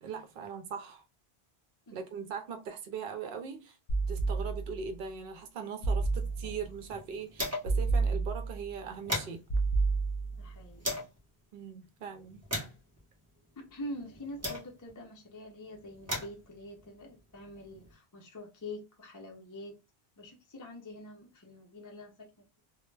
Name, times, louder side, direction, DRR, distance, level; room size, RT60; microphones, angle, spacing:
voice 1, 0.0-1.0 1.9-3.8 4.1-9.4 11.5-12.4, right 6 dB, 65° right, 0.7 m, -40 dB
sound 1, 3.9-4.9 5.8-6.7 7.6-8.7 9.5-10.6, right 3 dB, 60° left, 0.7 m, -30 dB
sound 2, 6.1-7.9 8.2-8.3 8.6-11.2 11.8-15.0 15.7-17.9, left 1 dB, 15° right, 0.6 m, -40 dB
voice 2, 10.4-11.0 13.6-19.8 20.2-22.6, left 1 dB, 30° left, 0.3 m, -45 dB
2.1 x 2.0 x 3.2 m
omnidirectional pair, 1.1 m